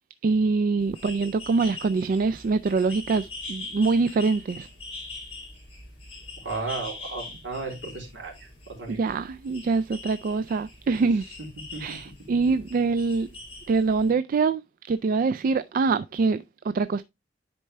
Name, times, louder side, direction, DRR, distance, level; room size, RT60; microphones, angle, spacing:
voice 1, 0.2-4.7 8.9-11.3 11.8-13.3 13.7-17.0, right 4 dB, 50° right, 0.3 m, -24 dB
sound 1, 0.8-14.1, left 3 dB, 30° left, 3.6 m, -42 dB
voice 2, 6.4-9.0 11.7-12.0, right 3 dB, 70° right, 3.2 m, -34 dB
10.0 x 4.4 x 3.2 m
head